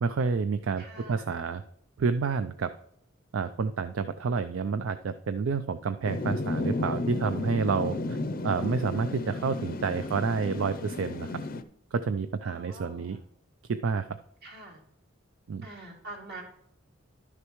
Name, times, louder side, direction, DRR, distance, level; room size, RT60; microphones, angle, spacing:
voice 1, 0.0-1.6 2.0-2.7 3.3-8.2 8.4-11.3 11.9-13.2 13.7-14.1 15.5-15.7, right 5 dB, 75° right, 11 dB, 0.4 m, -29 dB
voice 2, 0.8-1.3 12.4-13.2 14.4-14.8 15.6-16.4, right 2 dB, 55° right, -1 dB, 2.6 m, -45 dB
sound 1, 6.0-11.6, left 2 dB, 45° left, 0.5 m, -33 dB
11.5 x 6.6 x 3.1 m, 0.70 s
head